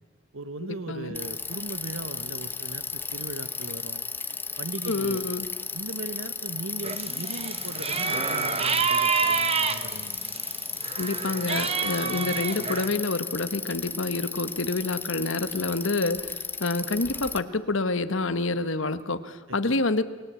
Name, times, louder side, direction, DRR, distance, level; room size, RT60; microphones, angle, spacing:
voice 1, 0.3-4.0 4.6-5.2 5.7-10.2 19.5-19.8, right 2 dB, 70° right, 13 dB, 1.3 m, -38 dB
Bicycle, 1.1-17.4, left 4 dB, 10° left, 0.9 m, -35 dB
voice 2, 4.9-5.5 10.9-20.0, left 3 dB, 60° left, 12 dB, 1.2 m, -28 dB
sound 1, 6.8-10.5 10.8-12.9, right 5 dB, 30° right, 1.3 m, -28 dB
29.0 x 20.5 x 8.3 m, 1.4 s
head